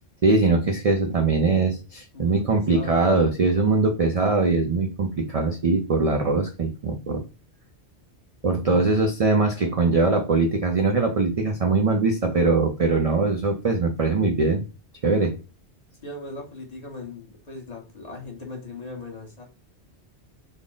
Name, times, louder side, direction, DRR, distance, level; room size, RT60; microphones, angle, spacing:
voice 1, 0.2-7.2 8.4-14.6 15.0-15.4, right 3 dB, 50° right, 3 dB, 0.4 m, -22 dB
voice 2, 2.1-3.0 16.0-19.4, left 3 dB, 40° left, 0 dB, 1.0 m, -39 dB
3.5 x 2.0 x 3.7 m, 0.31 s
omnidirectional pair, 1.1 m